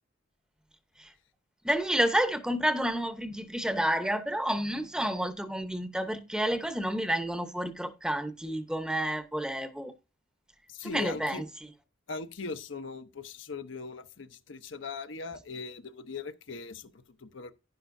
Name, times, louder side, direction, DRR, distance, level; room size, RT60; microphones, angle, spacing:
voice 1, 1.6-9.9 10.9-11.4, equal, 5° right, 0.8 m, -30 dB
voice 2, 10.7-11.4 12.1-17.5, left 4 dB, 70° left, 0.8 m, -40 dB
11.0 x 10.5 x 2.6 m
head